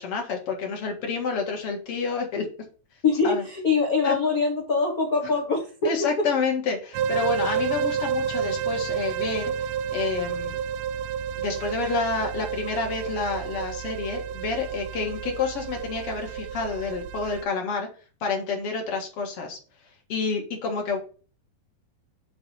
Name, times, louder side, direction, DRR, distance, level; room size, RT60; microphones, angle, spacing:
voice 1, 0.0-2.5 3.2-3.4 4.0-4.2 5.8-10.5 11.4-17.9 18.2-19.6 20.1-21.0, left 4 dB, 50° left, 2.0 m, -29 dB
voice 2, 3.0-6.3, left 4 dB, 70° left, 0.8 m, -24 dB
sound 1, 6.9-17.4, right 7 dB, 80° right, 2.0 m, -30 dB
7.9 x 4.0 x 5.4 m
omnidirectional pair, 4.3 m